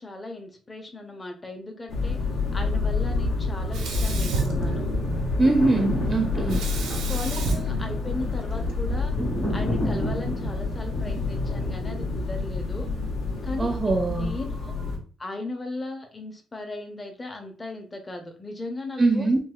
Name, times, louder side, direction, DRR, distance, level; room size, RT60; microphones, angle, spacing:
voice 1, 0.0-2.2 2.5-4.9 7.1-9.1 9.5-12.9 13.4-13.7 14.1-14.7 15.2-19.3, left 2 dB, 25° left, 4 dB, 0.7 m, -37 dB
sound 1, 1.9-15.0, left 3 dB, 70° left, 0.9 m, -28 dB
Sink (filling or washing), 3.7-5.3 6.5-8.7, right 4 dB, 90° right, 0.7 m, -32 dB
sound 2, 5.0-13.3 13.8-13.9, left 1 dB, 45° left, 1.6 m, -34 dB
voice 2, 5.4-6.6 13.6-14.3 19.0-19.4, right 2 dB, 30° right, 3 dB, 0.5 m, -22 dB
3.9 x 2.3 x 2.3 m, 0.39 s
cardioid pair, 90°, 0 cm